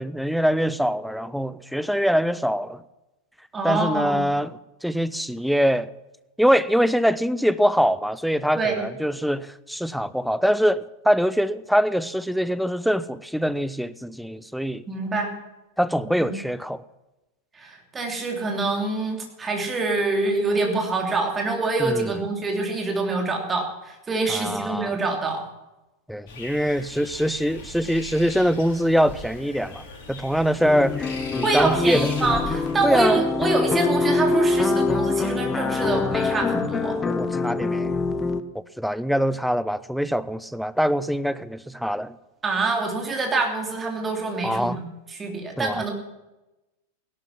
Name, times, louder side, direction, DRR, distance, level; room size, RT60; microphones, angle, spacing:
voice 1, 0.0-2.8 3.6-4.5 4.8-5.9 6.4-14.8 15.8-16.8 21.8-22.1 24.3-25.0 26.1-32.1 32.8-33.2 37.0-38.0 38.5-42.2 44.4-44.8 45.6-45.9, equal, ahead, 16 dB, 0.6 m, -23 dB
voice 2, 3.5-4.3 8.5-8.8 14.9-15.3 16.2-16.3 17.5-25.5 31.4-37.0 42.4-45.9, right 3 dB, 15° right, 2 dB, 3.3 m, -25 dB
sound 1, 26.3-32.7, left 2 dB, 50° left, 5.2 m, -39 dB
sound 2, 30.6-38.4, left 4 dB, 15° left, 0.9 m, -24 dB
16.5 x 11.5 x 5.9 m, 1.0 s
figure-of-eight pair, 90°, 0 cm